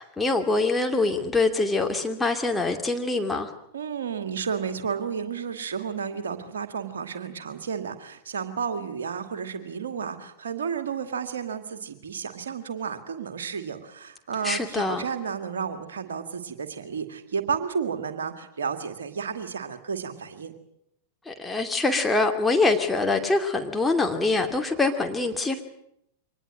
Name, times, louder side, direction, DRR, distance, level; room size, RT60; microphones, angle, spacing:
voice 1, 0.0-3.5 14.4-15.1 21.3-25.6, left 3 dB, 10° left, 3 dB, 2.6 m, -24 dB
voice 2, 3.7-20.5, right 6 dB, 65° right, 8 dB, 2.1 m, -32 dB
24.0 x 19.5 x 7.7 m, 0.75 s
figure-of-eight pair, 90°, 0 cm